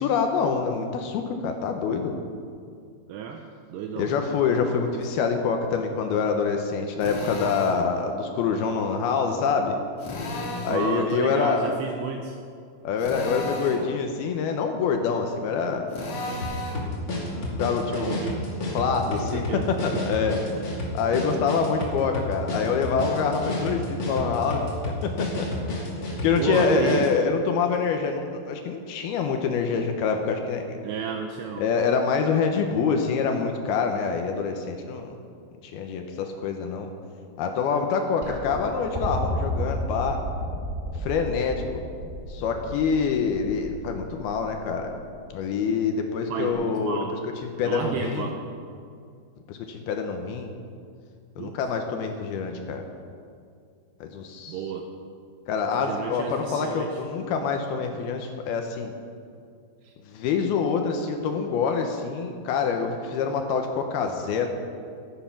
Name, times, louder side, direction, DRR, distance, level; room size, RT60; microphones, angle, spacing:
voice 1, 0.0-2.2 4.0-9.8 10.6-11.7 12.8-15.9 17.3-18.2 18.7-20.4 20.9-24.6 25.0-25.5 26.2-30.8 31.6-35.2 35.6-36.9 37.4-40.2 41.0-41.6 42.3-44.9 45.3-47.0 47.4-48.3 49.5-50.5 51.4-52.8 54.0-54.6 55.5-58.9 60.1-64.5, left 5 dB, 75° left, 4 dB, 2.5 m, -26 dB
voice 2, 3.1-4.2 4.6-5.0 10.7-12.4 17.9-18.4 19.2-20.7 26.4-27.1 30.8-31.7 46.3-47.2 47.6-48.4 51.4-51.6 54.5-54.9 55.8-57.0 59.8-59.9, right 7 dB, 80° right, 4 dB, 2.6 m, -32 dB
Drill, 7.0-7.8 10.0-10.9 13.0-13.9 15.9-16.9, left 2 dB, 50° left, 2.2 m, -33 dB
sound 1, 16.4-27.2, left 1 dB, 35° left, 2.2 m, -31 dB
sound 2, 38.2-45.4 46.5-46.6, equal, 20° right, 1.2 m, -33 dB
14.5 x 10.5 x 5.8 m, 2.3 s
omnidirectional pair, 5.3 m